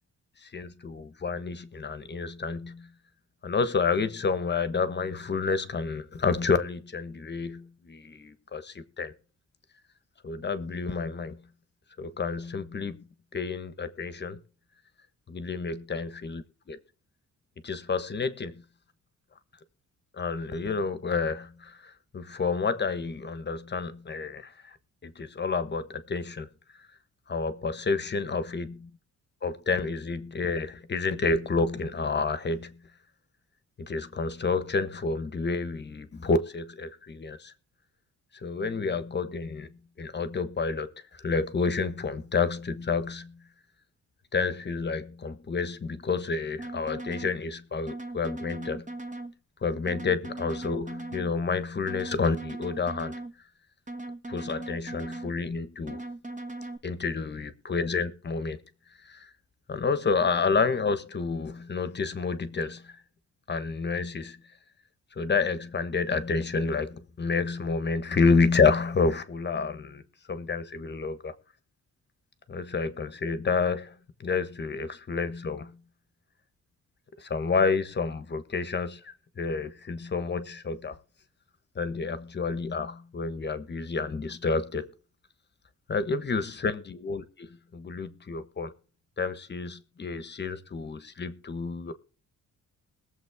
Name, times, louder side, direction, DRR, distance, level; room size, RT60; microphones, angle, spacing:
voice 1, 0.4-2.9 3.4-9.1 10.2-11.4 12.0-13.0 13.3-14.4 15.3-16.8 17.6-18.6 20.1-24.5 25.0-26.5 27.3-28.7 29.4-32.7 33.8-37.5 38.4-39.7 40.0-43.3 44.3-48.8 49.6-53.1 54.3-56.0 56.8-58.6 59.1-59.2 59.7-62.9 63.5-64.4 65.2-70.0 70.3-71.3 72.5-73.9 74.2-75.7 77.2-81.0 81.7-84.9 85.9-88.7 89.2-91.9, left 4 dB, 35° left, 1.3 m, -29 dB
sound 1, 46.6-47.3 47.9-49.3 49.9-51.3 51.9-53.3 53.9-55.3 55.9-56.8, right 2 dB, 25° right, 1.5 m, -38 dB
21.5 x 7.5 x 3.6 m
cardioid pair, 115°, 32 cm